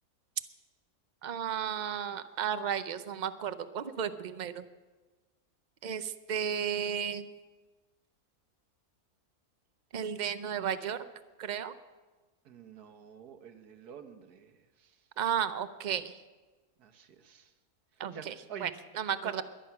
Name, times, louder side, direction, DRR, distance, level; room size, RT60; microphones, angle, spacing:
voice 1, 1.2-4.6 5.8-7.2 9.9-11.0 11.4-11.7 15.2-16.1 18.0-18.3 18.6-18.7 18.9-19.4, right 8 dB, 60° right, 12 dB, 0.4 m, -33 dB
voice 2, 12.5-15.0 16.8-17.5 18.1-18.7 19.2-19.4, right 8 dB, 85° right, 7 dB, 1.6 m, -48 dB
22.0 x 10.0 x 5.8 m, 1.3 s
omnidirectional pair, 1.6 m